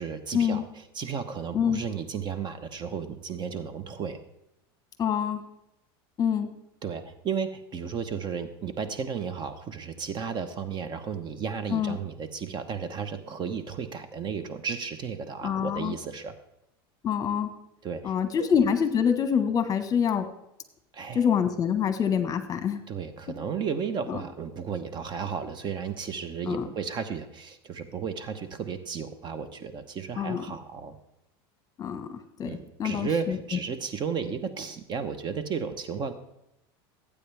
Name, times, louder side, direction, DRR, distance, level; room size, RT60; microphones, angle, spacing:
voice 1, 0.0-4.2 6.8-16.3 17.8-18.5 20.9-21.3 22.9-31.0 32.4-36.1, right 6 dB, 35° right, 10 dB, 1.0 m, -34 dB
voice 2, 5.0-5.4 6.2-6.5 11.7-12.0 15.4-15.9 17.0-17.5 18.0-20.3 21.1-22.8 26.5-26.7 30.2-30.4 31.8-32.5 32.8-33.4, left 7 dB, 30° left, 9 dB, 1.4 m, -26 dB
18.0 x 8.6 x 3.5 m, 0.85 s
supercardioid pair, 115°, 13 cm